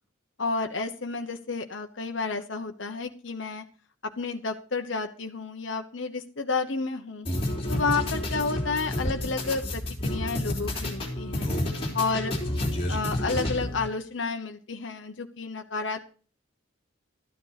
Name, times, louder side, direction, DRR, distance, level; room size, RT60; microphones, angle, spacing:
voice 1, 0.4-3.6 4.2-7.3 7.7-11.5 11.9-12.3 12.9-16.1, left 4 dB, 70° left, 4 dB, 1.0 m, -31 dB
sound 1, 7.3-13.9, left 1 dB, 30° left, 3.2 m, -30 dB
13.0 x 9.6 x 4.1 m, 0.39 s
head